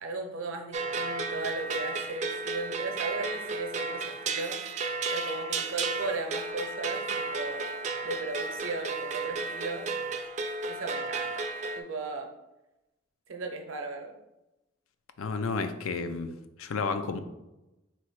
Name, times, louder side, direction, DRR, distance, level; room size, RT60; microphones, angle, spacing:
voice 1, 0.0-4.6 5.1-7.6 8.0-9.9 10.7-11.5 11.7-12.3 13.3-14.2, right 3 dB, 75° right, 5 dB, 0.7 m, -36 dB
sound 1, 0.7-11.8, right 4 dB, 35° right, 0.3 m, -33 dB
voice 2, 15.2-16.3 16.6-17.2, left 4 dB, 90° left, 9 dB, 0.4 m, -31 dB
3.7 x 3.0 x 4.5 m, 0.97 s
head